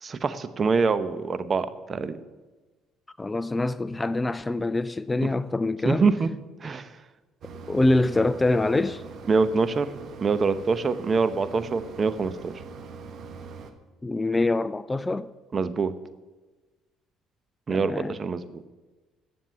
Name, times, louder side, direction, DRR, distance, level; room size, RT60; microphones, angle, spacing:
voice 1, 0.0-2.2 5.2-5.3 5.8-6.3 6.6-6.9 9.3-9.9 10.2-12.5 15.5-15.9 17.7-18.6, right 4 dB, 40° right, 0.9 m, -25 dB
voice 2, 3.2-6.0 7.7-9.0 14.0-15.3 17.7-18.2, left 2 dB, 20° left, 0.4 m, -25 dB
Mechanisms, 7.4-13.7, right 4 dB, 55° right, 1.3 m, -42 dB
10.5 x 7.4 x 9.6 m
supercardioid pair, 75°, 0 cm